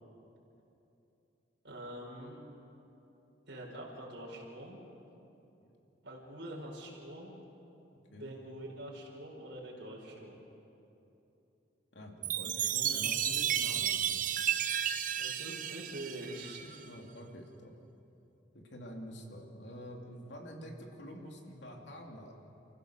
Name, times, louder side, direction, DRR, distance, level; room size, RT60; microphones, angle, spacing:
voice 1, 1.6-2.4 3.5-4.8 6.0-7.3 8.1-10.4 15.1-16.8, right 1 dB, 70° right, -3 dB, 4.4 m, -45 dB
voice 2, 7.9-8.3 11.9-14.2 16.8-17.7 18.7-22.3, equal, 75° left, 1 dB, 2.9 m, -47 dB
Chime, 12.2-16.8, right 10 dB, 45° right, 0.7 m, -33 dB
30.0 x 15.0 x 6.7 m, 2.9 s
head